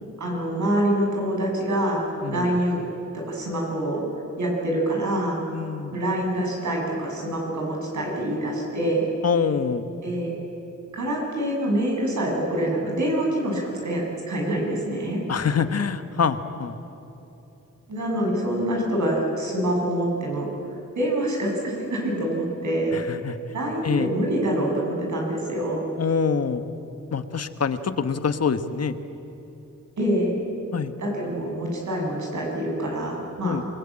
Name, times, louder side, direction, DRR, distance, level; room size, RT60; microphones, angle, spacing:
voice 1, 0.2-2.0 2.3-2.8 3.1-4.0 4.4-5.4 5.9-9.1 10.0-10.3 10.9-15.2 17.9-20.5 21.0-23.0 23.5-25.8 30.0-30.4 31.0-33.7, right 1 dB, 75° right, -1 dB, 7.6 m, -25 dB
voice 2, 2.2-2.5 5.5-6.0 9.2-9.8 15.3-16.7 22.9-23.4 23.8-24.1 26.0-26.6 27.1-29.0 30.7-30.9 33.4-33.6, left 6 dB, 55° left, 10 dB, 1.3 m, -25 dB
27.5 x 20.5 x 8.9 m, 3.0 s
wide cardioid pair, 100°, 29 cm